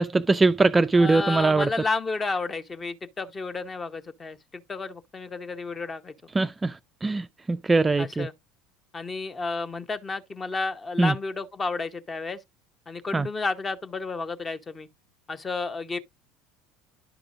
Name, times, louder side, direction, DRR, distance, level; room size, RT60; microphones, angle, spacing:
voice 1, 0.0-1.7 6.3-8.3 11.0-11.1 13.1-13.3, right 3 dB, 15° right, 0.3 m, -22 dB
voice 2, 0.9-6.1 8.0-8.3 8.9-12.4 12.9-14.9 15.3-16.0, left 3 dB, 25° left, 0.7 m, -31 dB
10.5 x 4.9 x 2.5 m
figure-of-eight pair, 70°, 0 cm